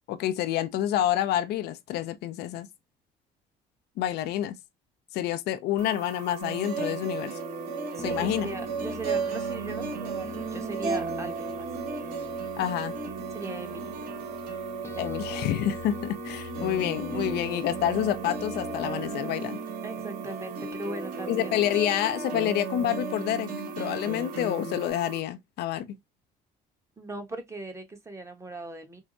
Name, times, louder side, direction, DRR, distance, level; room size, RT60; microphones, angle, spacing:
voice 1, 0.1-2.7 4.0-4.6 5.1-7.4 8.0-8.5 12.6-12.9 15.0-19.6 21.3-25.9, left 12 dB, 80° left, 0.5 m, -28 dB
sound 1, 5.8-25.2, right 5 dB, 90° right, 0.6 m, -42 dB
sound 2, 6.4-24.9, right 4 dB, 55° right, 1.6 m, -35 dB
voice 2, 7.9-11.7 12.0-12.6 13.3-13.9 14.8-15.0 19.8-21.6 27.0-29.0, right 2 dB, 15° right, 1.0 m, -39 dB
sound 3, 8.0-19.1, left 2 dB, 15° left, 0.5 m, -43 dB
4.5 x 2.0 x 2.5 m
cardioid pair, 110°, 17 cm